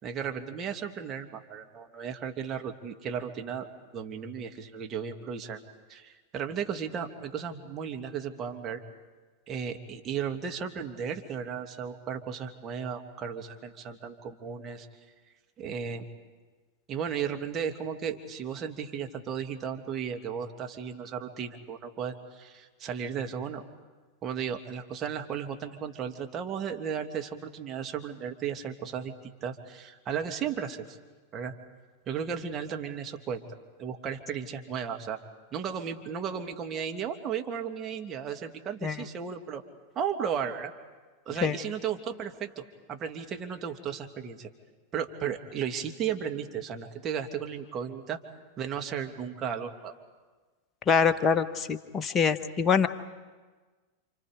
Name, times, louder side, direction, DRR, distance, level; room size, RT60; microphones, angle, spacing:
voice 1, 0.0-3.7 3.9-5.6 5.9-8.8 9.5-14.9 15.6-16.1 16.9-23.6 24.2-31.0 31.3-31.5 32.1-33.4 33.8-35.2 35.5-39.6 40.0-40.7 41.3-44.5 44.9-48.2 48.6-49.9, right 7 dB, 30° right, 4 dB, 2.3 m, -35 dB
voice 2, 50.9-52.9, left 6 dB, 25° left, 9 dB, 1.3 m, -24 dB
29.0 x 27.0 x 5.1 m, 1.4 s
figure-of-eight pair, 90°, 0 cm